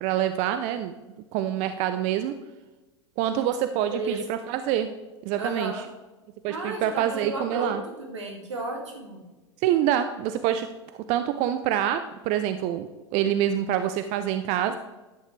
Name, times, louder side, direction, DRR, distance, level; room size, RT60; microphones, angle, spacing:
voice 1, 0.0-0.9 1.3-2.3 3.2-4.9 5.2-5.7 6.4-7.8 9.6-10.7 11.1-14.8, right 11 dB, 50° right, 10 dB, 0.6 m, -26 dB
voice 2, 5.4-5.8 6.5-9.2, right 2 dB, 85° right, 1 dB, 2.3 m, -33 dB
11.5 x 9.2 x 3.3 m, 1.2 s
hypercardioid pair, 90°, 15 cm